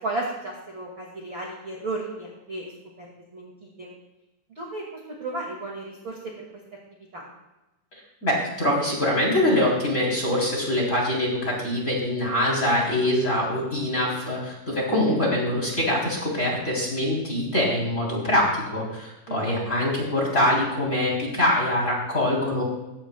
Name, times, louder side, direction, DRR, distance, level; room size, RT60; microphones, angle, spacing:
voice 1, 0.0-2.7 3.0-3.1 3.3-3.9 4.5-6.4 7.1-7.3 15.1-15.2 19.3-19.6, right 2 dB, 35° right, -3 dB, 2.3 m, -34 dB
voice 2, 8.2-22.6, left 1 dB, 20° left, -2 dB, 3.6 m, -24 dB
19.0 x 16.0 x 2.4 m, 1.0 s
omnidirectional pair, 5.0 m